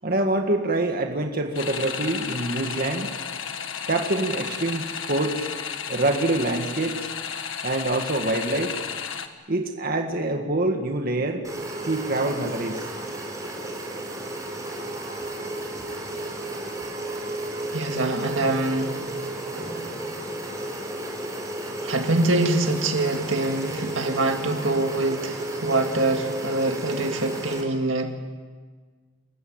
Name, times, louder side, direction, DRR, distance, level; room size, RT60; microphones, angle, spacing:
voice 1, 0.0-3.1 3.9-5.5 5.9-7.0 7.6-8.8 9.5-11.4 11.8-12.9, right 2 dB, 45° right, 4 dB, 1.9 m, -25 dB
sound 1, 1.5-9.3, left 7 dB, 70° left, 1.6 m, -33 dB
sound 2, 11.4-27.6, right 1 dB, 15° right, 4.6 m, -33 dB
voice 2, 17.7-19.0 21.8-28.1, right 2 dB, 70° right, 5 dB, 2.0 m, -24 dB
28.0 x 15.5 x 8.8 m, 1.5 s
head